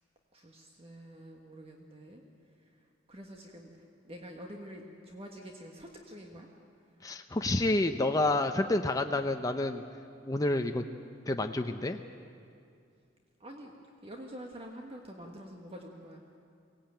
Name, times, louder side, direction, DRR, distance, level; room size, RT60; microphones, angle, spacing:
voice 1, 0.3-2.2 3.1-3.7 4.0-6.5 13.4-13.7 14.0-16.2, equal, 30° right, 1 dB, 1.5 m, -47 dB
voice 2, 7.0-9.8 10.3-10.8 11.3-12.0, left 2 dB, 20° left, 5 dB, 0.6 m, -29 dB
23.5 x 17.5 x 9.0 m, 2.4 s
head